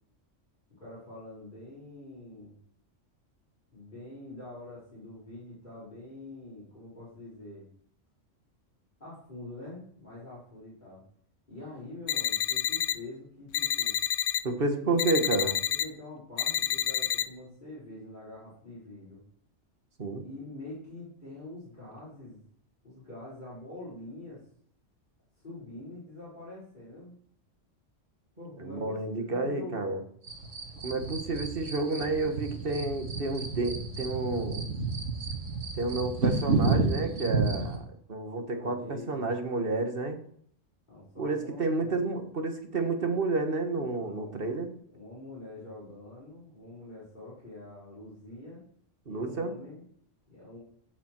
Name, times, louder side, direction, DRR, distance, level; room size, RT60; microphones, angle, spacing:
voice 1, 0.8-2.6 3.7-7.6 9.0-11.0 11.5-14.0 14.7-15.0 15.7-19.2 20.2-22.4 22.8-24.4 25.4-27.1 28.4-30.0 38.5-39.3 40.9-42.0 44.0-44.5 44.9-48.6 49.1-49.8 50.3-50.6, left 2 dB, 40° left, -9 dB, 5.0 m, -45 dB
sound 1, 12.1-12.9 13.5-14.4 15.0-15.8 16.4-17.2, left 10 dB, 80° left, 1.0 m, -28 dB
voice 2, 14.4-15.6 20.0-20.2 28.6-30.0 30.8-34.7 35.8-37.8 38.1-40.2 41.2-44.7 49.1-49.5, right 3 dB, 50° right, 6 dB, 1.7 m, -30 dB
sound 2, 30.2-37.8, right 3 dB, 75° right, 2.2 m, -31 dB
16.5 x 7.0 x 4.6 m, 0.64 s
omnidirectional pair, 1.3 m